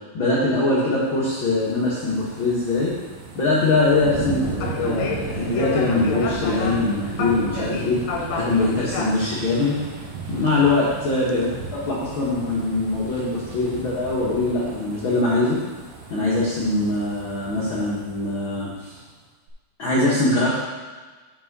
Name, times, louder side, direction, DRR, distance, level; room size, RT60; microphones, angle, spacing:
voice 1, 0.1-2.9 3.3-8.0 8.3-9.8 10.3-15.6 16.1-18.9 19.8-20.5, left 2 dB, 55° left, -7 dB, 1.4 m, -22 dB
sound 1, 0.9-19.1 19.5-19.6, right 5 dB, 80° right, 2.8 m, -35 dB
sound 2, 4.3-14.7, left 4 dB, 75° left, 2.2 m, -34 dB
7.1 x 6.1 x 4.7 m, 1.3 s
omnidirectional pair, 4.1 m